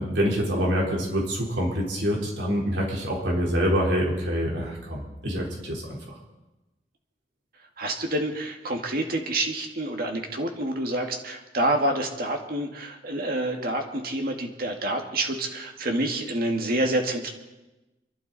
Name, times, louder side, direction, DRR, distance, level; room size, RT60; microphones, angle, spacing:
voice 1, 0.0-6.2, equal, 85° right, -2 dB, 3.9 m, -26 dB
voice 2, 7.8-17.3, right 1 dB, 55° right, 3 dB, 1.9 m, -28 dB
27.0 x 12.0 x 4.1 m, 1.1 s
head